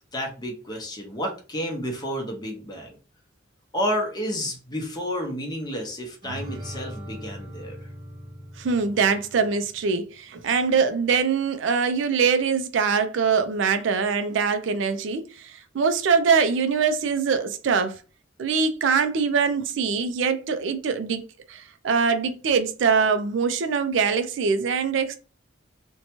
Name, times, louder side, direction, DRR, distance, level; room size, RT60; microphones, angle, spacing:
voice 1, 0.1-2.9 3.7-7.8, equal, 20° left, 0.7 m, -30 dB
sound 1, 6.2-9.8, equal, 25° right, 1.0 m, -40 dB
voice 2, 8.6-18.0 18.4-25.2, right 5 dB, 65° right, 0.4 m, -23 dB
2.6 x 2.2 x 2.9 m
head